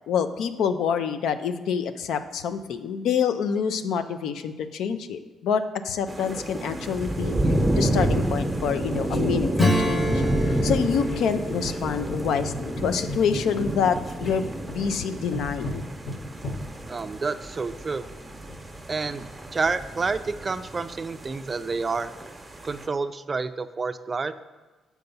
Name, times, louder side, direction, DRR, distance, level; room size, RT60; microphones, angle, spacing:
voice 1, 0.1-7.4 7.8-10.1 10.6-14.4 14.7-15.8, left 7 dB, 80° left, 10 dB, 0.4 m, -27 dB
sound 1, 6.1-22.9, right 1 dB, 15° right, 0.8 m, -29 dB
sound 2, 6.2-6.3 7.2-7.3 7.6-9.3 9.6-18.7, left 2 dB, 45° left, 1.0 m, -39 dB
Acoustic guitar / Strum, 9.5-13.9, left 1 dB, 20° left, 0.9 m, -29 dB
voice 2, 16.9-18.0 18.9-19.3 19.5-22.1 22.6-24.3, right 4 dB, 30° right, 11 dB, 0.4 m, -29 dB
6.8 x 4.6 x 5.4 m, 1.2 s
cardioid pair, 90°, 0 cm